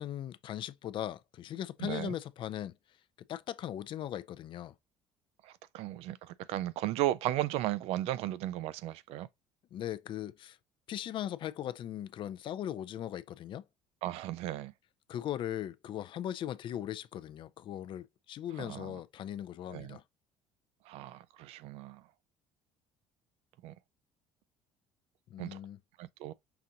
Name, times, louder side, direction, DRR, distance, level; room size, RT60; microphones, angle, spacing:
voice 1, 0.0-2.8 3.3-4.7 9.7-10.6 10.9-13.6 15.1-20.0 25.3-25.8, left 11 dB, 50° left, 0.4 m, -39 dB
voice 2, 1.8-2.2 5.4-9.3 14.0-14.7 18.6-19.0 19.7-20.0 20.8-22.1 23.6-23.7 25.4-25.6 26.0-26.3, right 14 dB, 70° right, 0.4 m, -35 dB
5.8 x 2.5 x 2.7 m
supercardioid pair, 90°, 11 cm